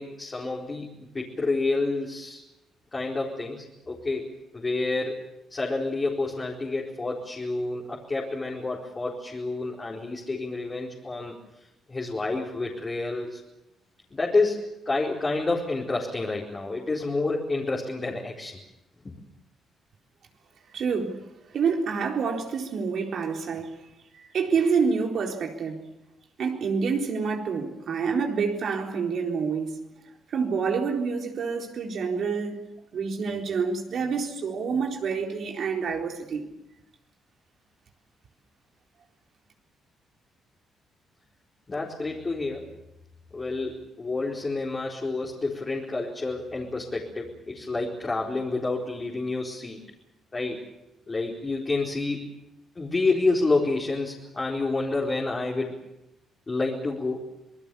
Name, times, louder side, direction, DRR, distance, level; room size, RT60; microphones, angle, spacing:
voice 1, 0.0-2.4 2.9-4.3 4.5-5.2 5.5-11.3 11.9-13.4 14.1-18.6 19.0-19.1 41.7-42.7 43.3-49.8 50.3-50.6 51.1-52.3 52.7-55.8 56.5-57.2, left 3 dB, 30° left, 4.5 m, -29 dB
voice 2, 20.7-23.8 24.1-25.8 26.4-29.7 30.3-32.6 32.9-36.5, right 5 dB, 60° right, 4.1 m, -27 dB
26.5 x 20.0 x 7.1 m
cardioid pair, 90°, 0 cm